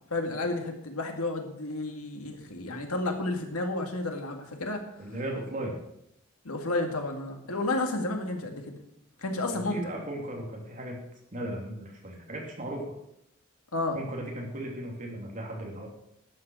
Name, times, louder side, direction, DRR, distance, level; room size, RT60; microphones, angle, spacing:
voice 1, 0.1-4.8 6.4-8.8 9.2-9.9 13.7-14.0, left 2 dB, 80° left, 3 dB, 2.1 m, -31 dB
voice 2, 5.0-5.8 9.5-11.0 11.3-12.9 13.9-15.9, right 1 dB, 35° right, -1 dB, 2.9 m, -36 dB
12.0 x 7.9 x 6.3 m, 0.78 s
head